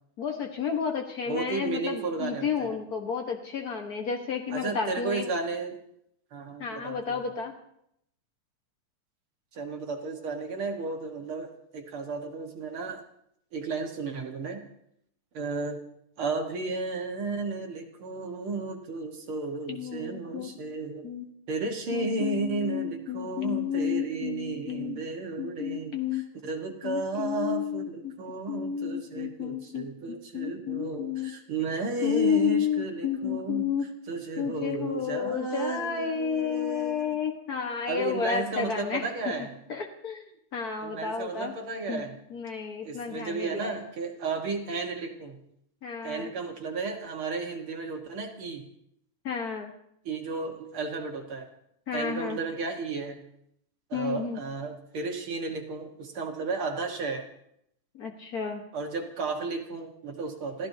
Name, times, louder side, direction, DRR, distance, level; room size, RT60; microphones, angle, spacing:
voice 1, 0.2-5.2 6.6-7.5 19.7-20.5 21.0-21.3 21.9-25.0 25.4-26.2 26.8-28.1 28.5-31.3 32.0-33.8 34.4-39.0 39.7-40.2 40.5-41.5 41.9-42.0 42.3-43.8 45.8-46.3 49.2-49.7 51.9-52.4 53.9-54.4 57.9-58.6, left 7 dB, 70° left, 3 dB, 0.8 m, -31 dB
voice 2, 1.3-2.8 4.5-5.8 6.3-7.2 9.5-13.0 13.5-14.6 15.3-15.8 16.2-21.1 21.5-33.7 34.1-37.2 37.9-39.5 40.8-42.2 42.8-45.4 46.0-48.6 50.1-51.5 51.9-53.2 53.9-57.3 58.7-60.7, right 3 dB, 50° right, 2 dB, 2.0 m, -33 dB
29.0 x 15.5 x 2.8 m, 0.74 s
omnidirectional pair, 3.6 m